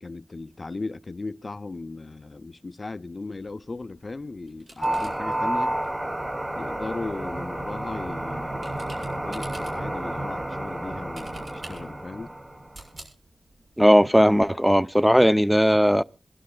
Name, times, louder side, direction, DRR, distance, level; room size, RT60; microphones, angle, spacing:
voice 1, 0.0-5.8 6.5-12.3, left 3 dB, 40° left, 0.5 m, -37 dB
sound 1, 3.3-14.3, right 1 dB, 60° right, 6.4 m, -50 dB
sound 2, 4.8-12.8, right 1 dB, 20° right, 1.0 m, -30 dB
voice 2, 13.8-16.0, equal, 5° right, 0.5 m, -18 dB
27.0 x 12.0 x 2.3 m
wide cardioid pair, 90°, 0 cm